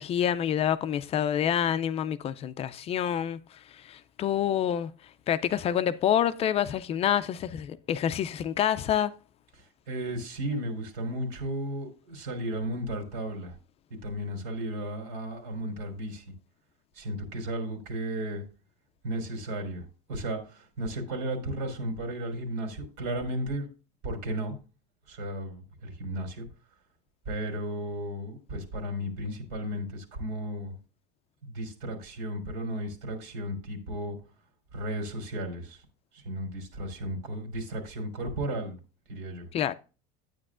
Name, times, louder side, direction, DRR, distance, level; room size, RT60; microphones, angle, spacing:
voice 1, 0.0-4.9 5.3-9.1 39.5-39.7, left 10 dB, 30° left, 0.4 m, -27 dB
voice 2, 9.9-13.6 14.0-16.2 17.0-18.4 19.0-19.8 20.1-23.7 24.0-24.5 25.1-26.5 27.3-30.8 31.4-34.2 34.7-35.8 36.1-38.8 39.1-39.5, right 1 dB, 85° right, 3.6 m, -34 dB
9.8 x 9.0 x 2.4 m
supercardioid pair, 145°, 21 cm